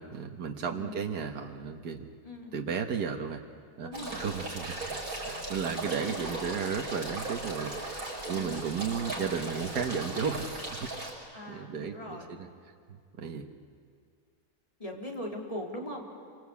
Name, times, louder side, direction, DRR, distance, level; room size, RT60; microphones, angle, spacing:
voice 1, 0.0-2.1 2.5-3.4 3.8-10.9 11.5-12.5 13.2-13.5, right 6 dB, 85° right, 3 dB, 1.8 m, -34 dB
voice 2, 0.7-1.1 2.2-2.5 3.8-4.3 6.1-6.3 8.3-8.5 11.3-12.5 14.8-16.1, left 1 dB, 20° left, -1 dB, 3.7 m, -40 dB
sound 1, 3.9-11.1, right 2 dB, 60° right, 6.2 m, -37 dB
27.5 x 25.0 x 8.5 m, 2.1 s
omnidirectional pair, 1.7 m